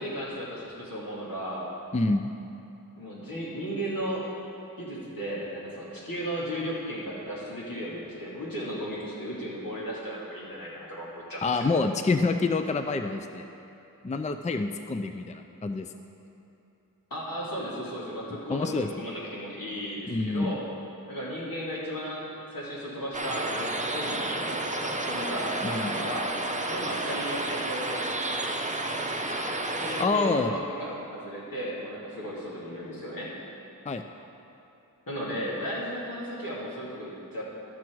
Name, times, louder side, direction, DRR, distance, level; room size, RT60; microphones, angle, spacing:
voice 1, 0.0-1.7 3.0-4.2 4.8-11.7 17.1-20.6 21.1-26.3 26.7-28.2 28.9-29.2 29.8-33.3 35.1-37.4, equal, 75° left, -6 dB, 2.4 m, -35 dB
voice 2, 1.9-2.3 11.4-13.5 14.0-15.9 18.5-18.9 20.1-20.6 25.6-26.1 30.0-30.6 33.9-34.0, left 3 dB, 20° left, 7 dB, 0.4 m, -27 dB
sound 1, 23.1-30.1, right 2 dB, 20° right, 0.7 m, -31 dB
13.5 x 6.1 x 4.6 m, 2.9 s
wide cardioid pair, 50°, 34 cm